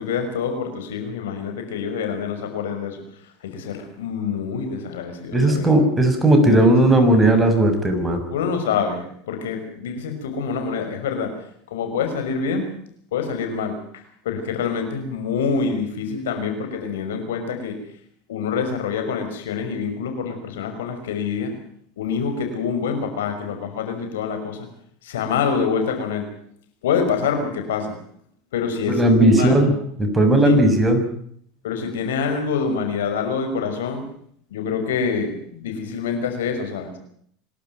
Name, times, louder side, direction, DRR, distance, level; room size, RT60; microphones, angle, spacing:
voice 1, 0.0-3.0 3.4-5.8 6.4-6.7 8.3-11.3 11.7-12.7 13.1-17.8 18.3-21.5 22.0-24.7 25.0-26.3 26.8-28.0 28.5-29.7 30.4-30.6 31.6-34.1 34.5-37.0, left 5 dB, 85° left, 6 dB, 5.7 m, -26 dB
voice 2, 5.3-8.2 28.9-29.7 30.0-31.0, right 1 dB, 15° right, 5 dB, 6.4 m, -16 dB
26.0 x 12.5 x 9.4 m, 0.65 s
hypercardioid pair, 100°, 0 cm